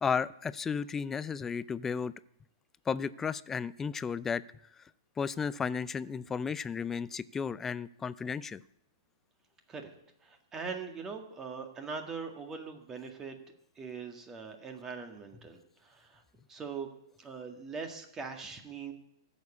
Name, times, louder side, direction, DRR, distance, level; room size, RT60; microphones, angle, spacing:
voice 1, 0.0-2.1 2.9-4.4 5.2-8.6, left 6 dB, 15° left, 18 dB, 0.4 m, -33 dB
voice 2, 10.2-13.4 13.8-16.2 16.5-16.9 17.2-18.9, right 5 dB, 20° right, 5 dB, 1.8 m, -41 dB
13.5 x 7.1 x 8.4 m, 0.80 s
figure-of-eight pair, 110°, 2 cm